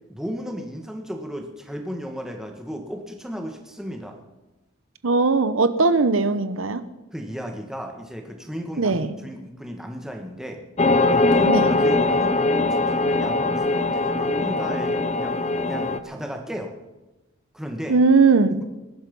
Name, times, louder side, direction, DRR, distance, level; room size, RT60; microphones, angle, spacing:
voice 1, 0.1-4.2 7.1-10.6 11.1-12.4 12.7-16.7 17.5-18.0, equal, 5° right, 3 dB, 1.7 m, -34 dB
voice 2, 5.0-6.8 8.8-9.2 11.5-11.7 17.9-18.6, right 4 dB, 80° right, 12 dB, 0.9 m, -19 dB
sound 1, 10.8-16.0, left 2 dB, 30° left, 0.9 m, -21 dB
21.0 x 11.5 x 5.5 m, 1.0 s
head